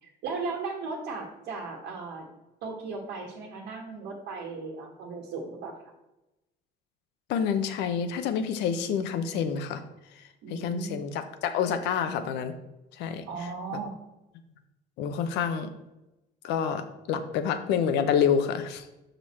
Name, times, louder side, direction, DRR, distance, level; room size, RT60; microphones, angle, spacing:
voice 1, 0.0-2.3 2.6-5.7 10.4-11.0 13.2-14.0, right 4 dB, 80° right, -1 dB, 1.4 m, -36 dB
voice 2, 7.3-9.8 10.2-12.5 12.9-13.8 15.0-15.7 16.4-18.9, left 7 dB, 90° left, 10 dB, 0.7 m, -28 dB
6.1 x 5.3 x 4.2 m, 0.96 s
cardioid pair, 110°, 17 cm